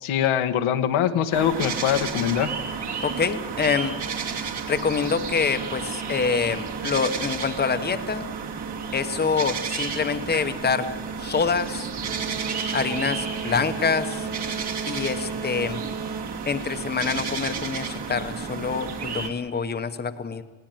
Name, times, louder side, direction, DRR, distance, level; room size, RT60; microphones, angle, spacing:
voice 1, 0.0-2.5, left 9 dB, 90° left, 7 dB, 1.5 m, -23 dB
sound 1, 1.3-19.3, right 5 dB, 55° right, 2.6 m, -31 dB
voice 2, 3.0-3.9 4.7-8.3 8.9-10.9 11.2-11.9 12.7-14.3 14.9-15.8 16.5-20.4, left 5 dB, 20° left, 8 dB, 1.0 m, -26 dB
20.5 x 16.0 x 9.1 m, 1.2 s
cardioid pair, 125°, 48 cm